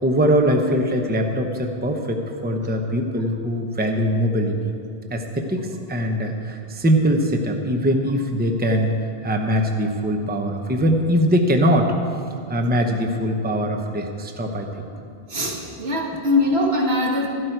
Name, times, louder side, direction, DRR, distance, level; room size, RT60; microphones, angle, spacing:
voice 1, 0.0-4.7 5.1-11.9 12.5-14.7, equal, 10° right, 3 dB, 0.7 m, -22 dB
voice 2, 15.3-17.3, left 1 dB, 85° right, -1 dB, 2.0 m, -22 dB
12.5 x 12.0 x 4.6 m, 2.4 s
omnidirectional pair, 1.0 m